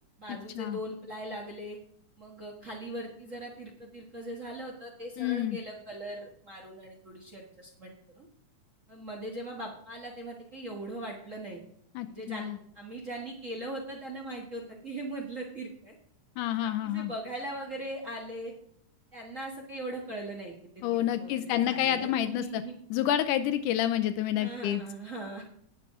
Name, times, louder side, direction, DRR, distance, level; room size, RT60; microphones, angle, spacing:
voice 1, 0.2-1.8 2.2-8.3 8.9-11.6 12.1-15.9 16.6-18.5 19.1-20.5 20.9-22.7 24.4-25.4, right 1 dB, 40° right, -1 dB, 1.1 m, -40 dB
voice 2, 5.2-5.6 12.0-12.6 16.4-17.1 20.8-22.6 22.9-24.8, left 11 dB, 85° left, 9 dB, 2.1 m, -29 dB
18.0 x 6.0 x 3.6 m, 0.67 s
omnidirectional pair, 3.7 m